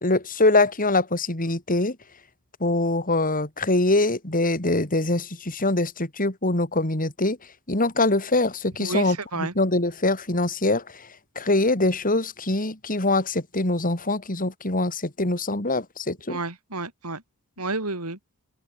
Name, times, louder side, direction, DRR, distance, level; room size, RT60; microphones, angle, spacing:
voice 1, 0.0-2.0 2.6-7.4 7.7-11.1 11.4-16.4, left 2 dB, 40° left, 3.9 m, -23 dB
voice 2, 8.8-9.5 16.3-17.2 17.6-18.2, right 3 dB, 85° right, 5.6 m, -30 dB
open air
head